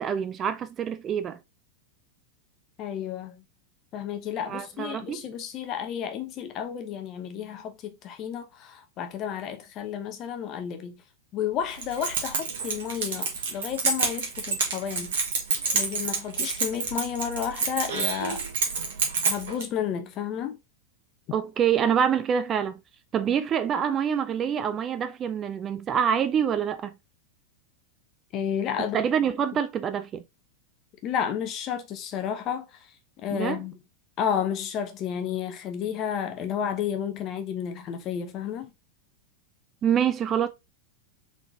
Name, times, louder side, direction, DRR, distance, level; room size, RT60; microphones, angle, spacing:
voice 1, 0.0-1.4 4.5-5.3 21.3-22.8 23.1-26.9 28.9-30.2 33.3-33.6 39.8-40.5, right 8 dB, 25° right, 0.4 m, -26 dB
voice 2, 2.8-3.4 3.9-11.0 11.3-15.2 15.7-18.4 19.2-20.6 28.3-29.0 31.0-32.7 33.2-33.7 34.2-38.7, left 8 dB, 35° left, 0.8 m, -31 dB
Keys jangling, 11.7-19.6, right 4 dB, 60° right, 1.3 m, -28 dB
3.8 x 3.7 x 2.7 m
figure-of-eight pair, 90°, 0 cm